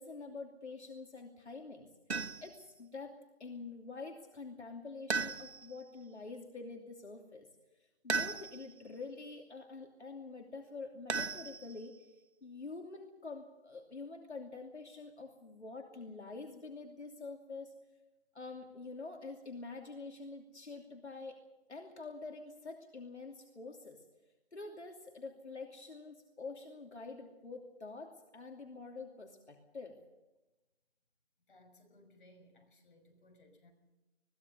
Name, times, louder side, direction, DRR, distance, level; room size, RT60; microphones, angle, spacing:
voice 1, 0.0-7.5 7.8-11.9 12.4-17.7 18.3-21.3 21.7-24.1 24.5-30.0, left 3 dB, 80° left, 2 dB, 2.9 m, -47 dB
sound 1, 2.1-2.6 5.1-5.8 8.1-8.8 11.1-12.0, right 4 dB, 70° right, 1.4 m, -36 dB
voice 2, 31.5-33.7, left 1 dB, 50° left, 3 dB, 6.2 m, -62 dB
22.5 x 17.5 x 6.9 m, 1.1 s
figure-of-eight pair, 165°, 33 cm